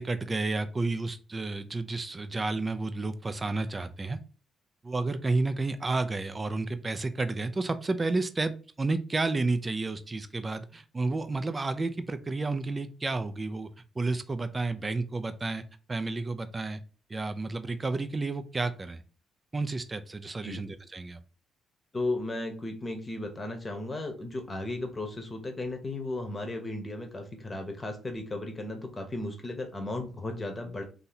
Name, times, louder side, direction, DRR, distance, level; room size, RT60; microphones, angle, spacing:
voice 1, 0.0-4.2 4.8-8.5 8.8-13.7 14.0-15.6 15.9-16.8 17.1-19.0 19.5-21.2, right 3 dB, 25° right, 11 dB, 0.4 m, -31 dB
voice 2, 21.9-30.8, left 2 dB, 25° left, 4 dB, 1.0 m, -35 dB
2.8 x 2.7 x 4.0 m, 0.37 s
cardioid pair, 90°, 0 cm